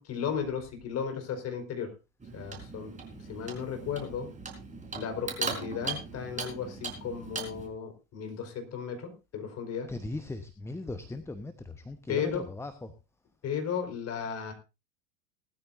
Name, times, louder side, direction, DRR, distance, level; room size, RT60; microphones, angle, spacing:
voice 1, 0.0-1.9 2.3-2.9 3.3-4.3 4.9-9.9 12.1-12.4 13.4-14.5, left 7 dB, 35° left, 5 dB, 4.8 m, -35 dB
Clock, 2.2-7.7, right 4 dB, 15° right, 4.3 m, -39 dB
voice 2, 9.9-12.9, left 2 dB, 5° left, 11 dB, 1.0 m, -38 dB
19.5 x 13.5 x 2.6 m, 0.28 s
figure-of-eight pair, 85°, 42 cm